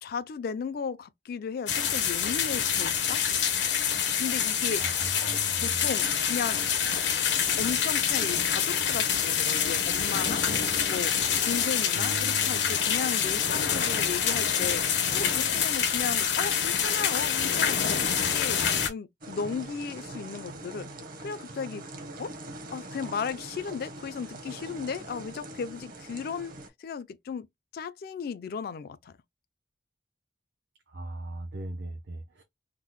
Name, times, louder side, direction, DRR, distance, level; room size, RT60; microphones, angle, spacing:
voice 1, 0.0-3.2 4.2-4.9 5.6-6.6 7.6-10.5 10.9-11.1 11.5-14.8 15.1-18.6 18.9-20.9 21.2-21.8 22.2-22.3 22.7-27.5 27.7-29.1, left 6 dB, 55° left, 0.3 m, -35 dB
sound 1, 1.7-18.9, left 7 dB, 85° left, 0.8 m, -26 dB
voice 2, 4.8-5.8 11.9-12.7 30.9-32.4, right 2 dB, 75° right, 0.6 m, -38 dB
sound 2, 19.2-26.7, right 2 dB, 50° right, 0.9 m, -43 dB
3.6 x 2.1 x 3.0 m
head